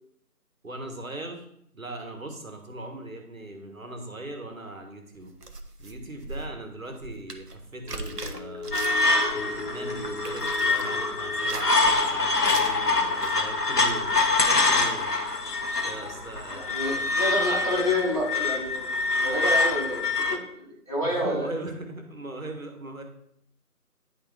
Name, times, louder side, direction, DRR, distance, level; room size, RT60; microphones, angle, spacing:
voice 1, 0.6-1.5 1.7-5.3 5.8-8.7 9.3-15.1 15.8-17.7 21.0-23.0, right 2 dB, 60° right, 4 dB, 1.7 m, -39 dB
sound 1, 5.2-9.3 9.6-10.9 11.3-11.9 12.4-12.8 13.1-13.4, right 2 dB, 80° right, 1.2 m, -39 dB
sound 2, 7.8-18.4 18.7-18.9, left 3 dB, 45° left, 1.1 m, -41 dB
sound 3, 8.7-20.4, left 3 dB, 80° left, 1.4 m, -25 dB
voice 2, 16.5-18.9 19.2-21.5, left 1 dB, 25° left, -4 dB, 1.3 m, -28 dB
10.0 x 4.2 x 3.5 m, 0.72 s
figure-of-eight pair, 165°, 47 cm